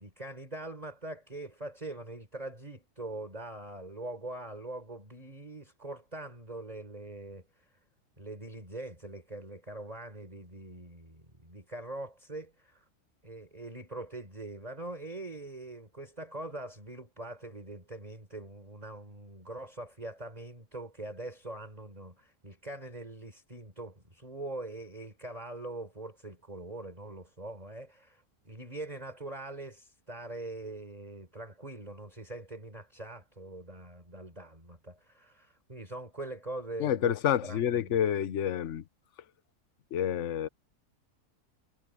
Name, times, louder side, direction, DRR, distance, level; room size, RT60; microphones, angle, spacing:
voice 1, 0.0-7.4 8.2-12.8 13.2-37.2 37.4-38.0, right 2 dB, 25° right, 4.6 m, -43 dB
voice 2, 36.8-38.8 39.9-40.5, left 10 dB, 55° left, 1.2 m, -28 dB
omnidirectional pair, 1.6 m